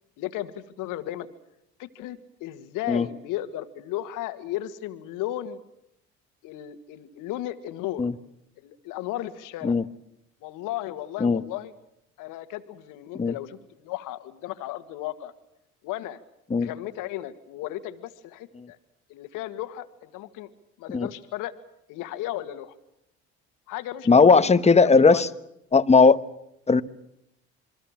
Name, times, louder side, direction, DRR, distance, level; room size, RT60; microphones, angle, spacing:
voice 1, 0.2-1.3 1.8-5.6 6.4-8.1 8.6-9.8 10.4-11.7 12.2-15.3 15.8-16.2 16.6-18.8 19.1-20.5 20.8-21.5 21.9-22.7 23.7-24.5 24.8-25.3, left 14 dB, 70° left, 1.9 m, -35 dB
voice 2, 24.1-25.3 25.7-26.2 26.7-26.8, left 4 dB, 20° left, 1.3 m, -17 dB
27.5 x 22.5 x 7.3 m
hypercardioid pair, 70°, 33 cm